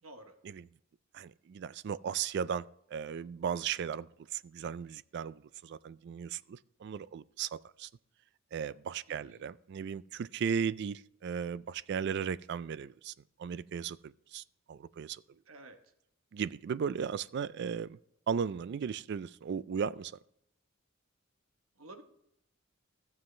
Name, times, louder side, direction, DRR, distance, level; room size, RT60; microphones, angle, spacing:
voice 1, 0.0-0.4 9.1-9.4 15.5-15.8 21.8-22.0, right 2 dB, 75° right, 1.2 m, -51 dB
voice 2, 1.1-2.7 2.9-7.9 8.5-13.1 13.4-15.2 16.3-18.0 18.3-20.2, right 7 dB, 55° right, 0.3 m, -36 dB
14.0 x 7.4 x 3.2 m
head